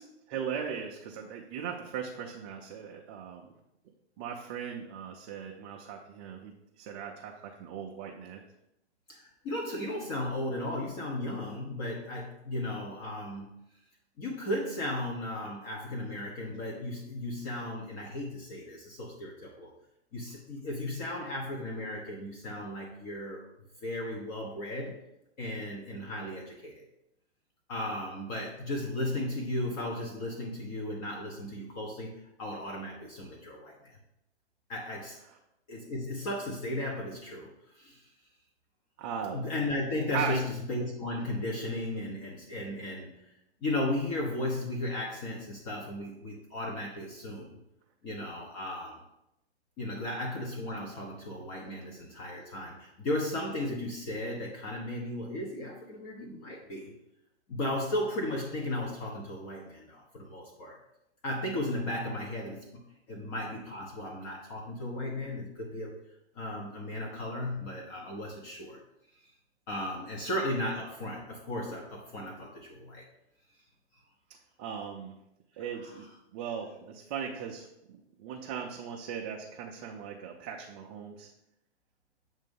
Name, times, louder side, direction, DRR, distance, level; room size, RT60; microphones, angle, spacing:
voice 1, 0.3-3.5 4.2-6.5 6.8-8.4 39.0-39.4 40.1-40.4 74.6-75.1 75.6-76.1 76.3-77.7 78.2-81.3, right 7 dB, 25° right, 0 dB, 0.5 m, -38 dB
voice 2, 9.1-13.5 14.2-19.7 20.1-23.4 23.8-24.9 25.4-26.8 27.7-34.0 34.7-35.2 35.7-37.5 37.7-38.1 39.3-43.2 43.6-47.6 48.0-49.0 49.8-56.9 57.5-60.8 61.2-62.8 63.1-65.9 66.3-68.8 69.7-73.1 75.6-76.1, left 1 dB, 35° left, -1 dB, 1.0 m, -35 dB
7.6 x 2.7 x 5.3 m, 0.84 s
hypercardioid pair, 135°, 34 cm